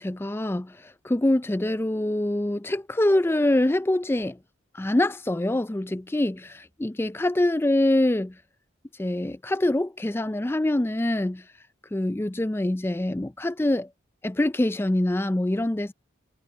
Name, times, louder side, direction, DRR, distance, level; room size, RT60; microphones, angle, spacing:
voice 1, 0.0-4.4 4.7-8.3 9.0-11.4 11.9-13.9 14.2-15.9, left 1 dB, 10° left, 0.3 m, -25 dB
head